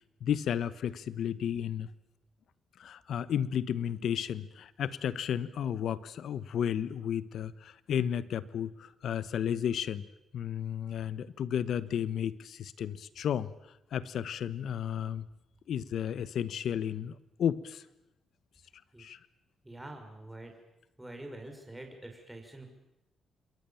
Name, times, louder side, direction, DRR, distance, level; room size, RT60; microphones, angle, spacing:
voice 1, 0.2-1.9 2.8-10.0 10.3-13.5 13.9-15.3 15.7-17.8 19.0-19.2, left 9 dB, 70° left, 16 dB, 1.1 m, -33 dB
voice 2, 19.6-20.5 21.0-22.7, right 1 dB, 10° right, 3 dB, 5.8 m, -45 dB
28.0 x 22.0 x 7.2 m, 0.90 s
cardioid pair, 100°, 0 cm